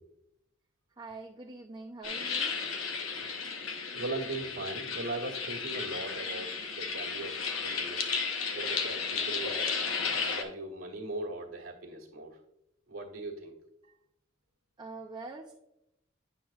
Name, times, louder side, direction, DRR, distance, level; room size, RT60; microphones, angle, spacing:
voice 1, 1.0-2.6 14.8-15.5, right 3 dB, 20° right, -1 dB, 0.5 m, -44 dB
sound 1, 2.0-10.4, left 5 dB, 80° left, 0.8 m, -34 dB
voice 2, 3.9-8.1 8.5-9.6 10.3-12.4 12.9-13.5 13.8-14.0, right 2 dB, 80° right, -1 dB, 1.3 m, -39 dB
9.3 x 5.9 x 2.4 m, 0.84 s
head